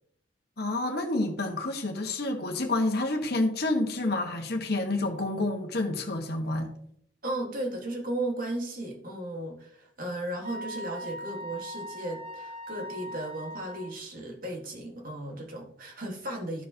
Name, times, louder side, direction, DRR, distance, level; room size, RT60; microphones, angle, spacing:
voice 1, 0.6-6.7, left 2 dB, 55° left, 1.2 m, -29 dB
voice 2, 7.2-16.7, right 1 dB, 45° right, 1.4 m, -35 dB
Wind instrument woodwind instrument, 10.4-13.9, equal, 30° right, 0.6 m, -40 dB
13.5 x 4.6 x 2.7 m
head